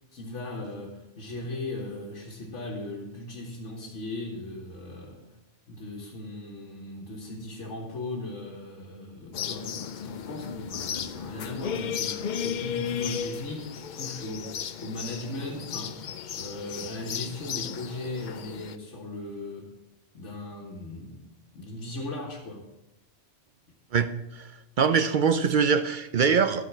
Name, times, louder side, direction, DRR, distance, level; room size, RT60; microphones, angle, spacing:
voice 1, 0.1-5.2 5.7-16.0 16.3-19.7 20.1-21.3 21.5-22.6, left 2 dB, 90° left, -4 dB, 1.8 m, -38 dB
sound 1, 9.3-18.8, left 8 dB, 55° left, 0.5 m, -34 dB
voice 2, 24.8-26.7, right 6 dB, 55° right, 9 dB, 0.6 m, -23 dB
12.0 x 5.2 x 7.2 m, 0.96 s
omnidirectional pair, 1.2 m